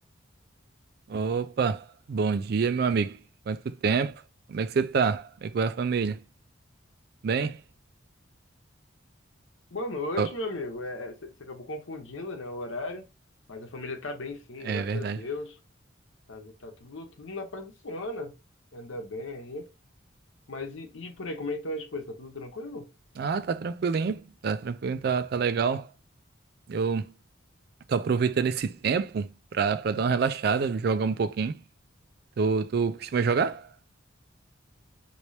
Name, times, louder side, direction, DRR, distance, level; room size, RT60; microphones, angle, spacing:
voice 1, 1.1-3.2 3.5-4.2 4.5-6.2 7.2-7.6 10.2-10.3 14.6-15.2 23.2-25.9 26.7-27.1 27.9-31.6 32.4-33.7, right 5 dB, 50° right, 0.3 m, -27 dB
voice 2, 9.7-13.1 13.5-15.6 16.3-18.3 18.7-19.7 20.5-22.9, left 2 dB, 85° left, 0.9 m, -36 dB
3.2 x 2.9 x 2.7 m
head